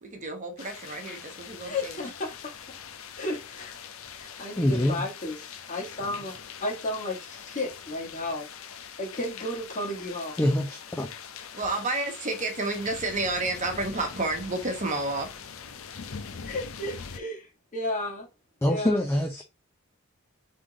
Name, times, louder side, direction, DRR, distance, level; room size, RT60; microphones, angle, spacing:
voice 1, 0.0-2.0 11.5-15.4, right 2 dB, 35° right, 1.1 m, -30 dB
sound 1, 0.6-17.2, left 7 dB, 75° left, 0.6 m, -43 dB
voice 2, 1.6-2.5 3.2-3.8 4.2-8.5 9.0-10.4 16.4-18.3 18.7-19.0, left 1 dB, 40° left, 1.4 m, -33 dB
voice 3, 4.6-5.0 10.4-11.1 18.6-19.4, left 1 dB, 10° left, 0.5 m, -25 dB
3.7 x 3.5 x 3.8 m
head